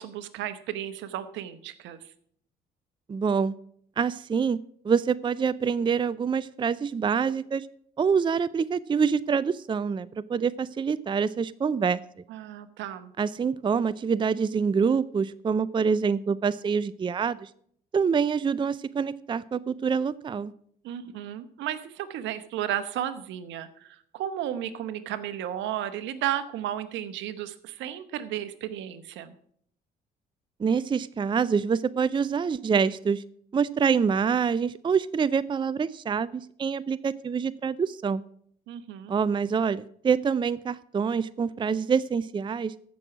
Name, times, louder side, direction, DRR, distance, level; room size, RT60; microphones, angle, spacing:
voice 1, 0.0-2.0 12.3-13.1 20.8-29.3 38.7-39.1, right 11 dB, 75° right, 12 dB, 1.0 m, -34 dB
voice 2, 3.1-3.5 4.0-4.6 4.8-7.7 8.0-12.0 13.2-17.5 17.9-20.5 30.6-33.2 33.5-38.2 39.1-42.7, right 6 dB, 25° right, 17 dB, 0.4 m, -26 dB
14.5 x 6.2 x 6.0 m, 0.64 s
supercardioid pair, 70°, 19 cm